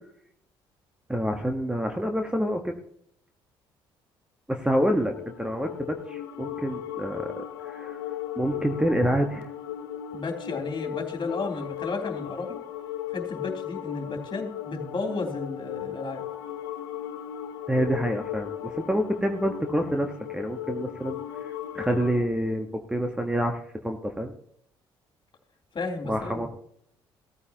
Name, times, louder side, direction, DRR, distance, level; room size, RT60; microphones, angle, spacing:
voice 1, 1.1-2.7 4.5-7.3 7.6-8.0 8.3-9.5 17.7-21.2 21.7-24.3 26.0-26.5, equal, 5° right, 4 dB, 1.5 m, -27 dB
sound 1, 4.7-22.3, left 11 dB, 80° left, 1.1 m, -37 dB
voice 2, 10.1-12.5 13.1-16.2 25.7-26.5, left 3 dB, 40° left, 1 dB, 3.4 m, -33 dB
16.5 x 14.0 x 3.0 m, 0.69 s
hypercardioid pair, 50°, 12 cm